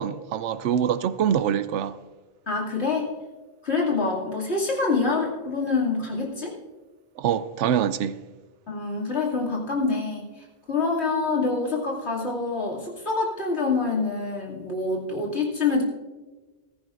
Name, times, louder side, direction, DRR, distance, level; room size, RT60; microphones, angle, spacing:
voice 1, 0.0-2.0 7.2-8.2, right 9 dB, 85° right, 0.9 m, -24 dB
voice 2, 2.5-3.1 3.6-6.5 8.7-15.8, left 4 dB, 65° left, 2.9 m, -26 dB
15.0 x 14.0 x 2.6 m
omnidirectional pair, 1.2 m